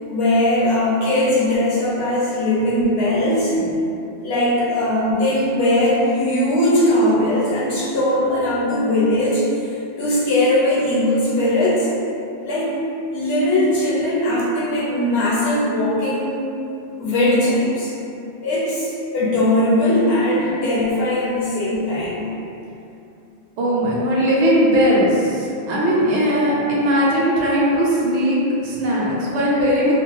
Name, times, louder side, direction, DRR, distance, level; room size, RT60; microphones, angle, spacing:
voice 1, 0.1-3.6 4.2-11.9 12.4-12.7 13.1-16.5 17.0-17.9 18.4-22.3, left 1 dB, 65° left, -8 dB, 0.9 m, -19 dB
voice 2, 23.6-29.9, equal, 80° right, -6 dB, 0.9 m, -18 dB
2.6 x 2.1 x 2.9 m, 2.7 s
omnidirectional pair, 1.1 m